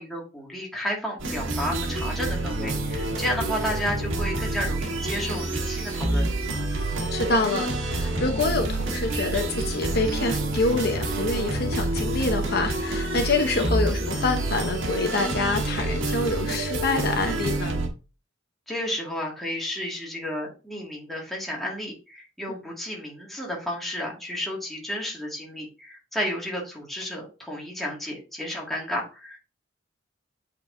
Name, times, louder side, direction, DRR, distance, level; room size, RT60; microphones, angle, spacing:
voice 1, 0.0-6.3 18.7-29.4, equal, ahead, 2.0 m, -32 dB
sound 1, 1.2-17.9, right 2 dB, 85° right, 1.4 m, -28 dB
voice 2, 7.1-17.8, left 3 dB, 55° left, 0.9 m, -26 dB
8.2 x 4.6 x 2.6 m
head